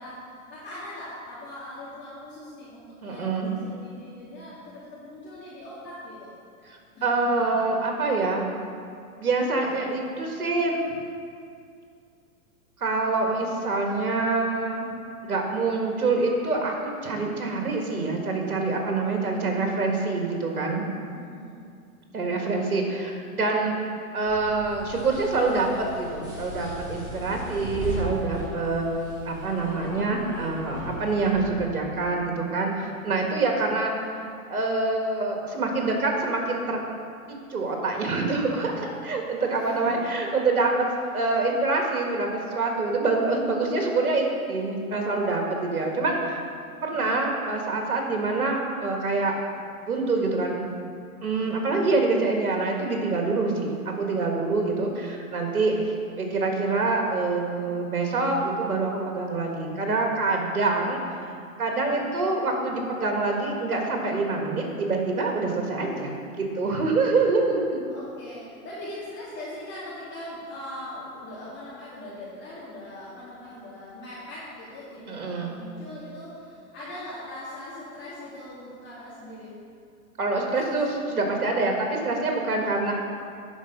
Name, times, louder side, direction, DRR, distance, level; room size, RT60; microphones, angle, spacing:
voice 1, 0.0-6.3 6.9-7.4 21.1-21.7 39.4-40.1 46.8-47.1 55.5-55.9 61.8-62.2 67.9-79.6 80.3-81.0 82.4-82.8, left 1 dB, 25° left, -10 dB, 2.3 m, -41 dB
voice 2, 3.0-3.6 7.0-8.5 9.2-10.9 12.8-14.9 15.3-20.8 22.1-23.8 24.1-33.9 34.5-36.8 37.3-40.9 41.1-46.4 46.8-49.3 49.8-50.7 51.2-55.7 56.2-61.3 61.6-67.8 75.1-75.5 80.2-82.9, right 3 dB, 85° right, 1 dB, 1.8 m, -26 dB
sound 1, 24.3-31.6, equal, 10° right, 2.3 m, -37 dB
11.0 x 4.9 x 5.3 m, 2.3 s
hypercardioid pair, 110°, 43 cm